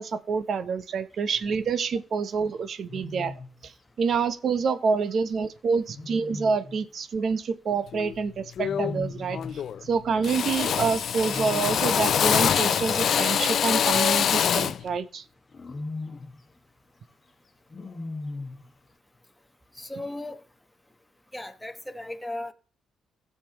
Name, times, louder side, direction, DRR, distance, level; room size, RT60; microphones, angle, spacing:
voice 1, 0.0-15.2, right 5 dB, 55° right, 0.8 m, -27 dB
Wild animals, 1.3-1.7 2.9-3.6 5.9-6.8 8.6-9.7 11.2-12.1 13.7-14.8 15.5-16.4 17.7-18.7, left 3 dB, 35° left, 1.6 m, -38 dB
Drill, 7.9-8.1 8.6-9.1 9.3-9.9 10.2-14.8, left 8 dB, 60° left, 0.4 m, -24 dB
voice 2, 19.7-20.4 21.3-22.5, left 1 dB, 5° left, 1.1 m, -36 dB
15.5 x 6.7 x 3.0 m
cardioid pair, 90°, 0 cm